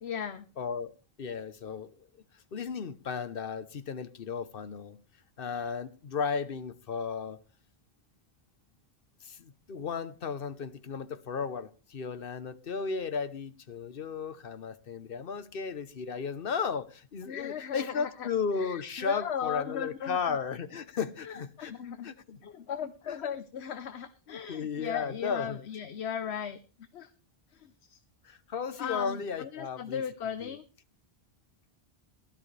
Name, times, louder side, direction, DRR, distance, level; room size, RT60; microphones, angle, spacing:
voice 1, 0.0-0.5 17.3-18.3 18.5-20.4 21.2-22.1 22.4-26.6 26.9-27.1 27.5-28.0 28.8-30.6, left 8 dB, 85° left, 1.1 m, -37 dB
voice 2, 0.6-2.1 2.5-5.0 5.4-7.4 9.2-21.7 22.0-22.4 23.0-23.2 24.3-25.6 28.2-30.6, left 5 dB, 60° left, 1.1 m, -35 dB
16.5 x 12.5 x 3.3 m
omnidirectional pair, 1.1 m